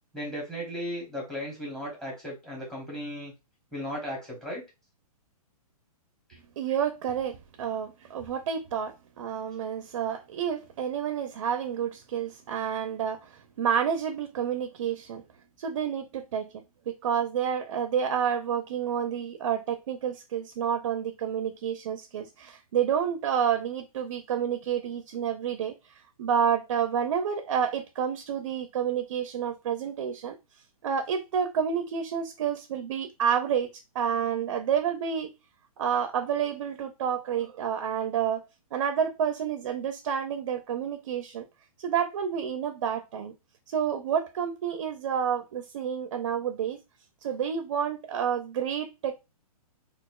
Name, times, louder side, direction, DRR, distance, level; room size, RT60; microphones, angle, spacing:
voice 1, 0.1-3.3 3.7-4.6 6.3-6.4, equal, ahead, 0.9 m, -36 dB
voice 2, 6.6-15.2 15.6-25.7 26.2-30.3 30.8-33.7 33.9-35.3 35.8-38.4 38.7-41.4 41.8-43.3 43.7-46.8 47.2-49.1, right 8 dB, 45° right, 0.4 m, -29 dB
4.0 x 2.4 x 2.3 m
hypercardioid pair, 165°, 20 cm